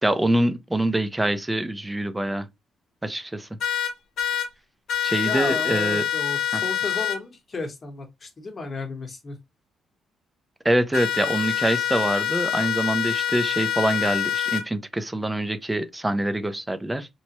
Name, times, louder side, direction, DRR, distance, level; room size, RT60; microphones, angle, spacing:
voice 1, 0.0-2.5 3.0-3.5 5.0-6.0 6.5-6.6 10.6-17.1, right 1 dB, 10° right, 0.4 m, -25 dB
sound 1, 3.6-4.5 4.9-7.2 10.9-14.6, left 10 dB, 75° left, 0.8 m, -26 dB
voice 2, 5.2-9.4, left 3 dB, 35° left, 1.0 m, -33 dB
3.0 x 2.1 x 2.9 m
cardioid pair, 90°, 0 cm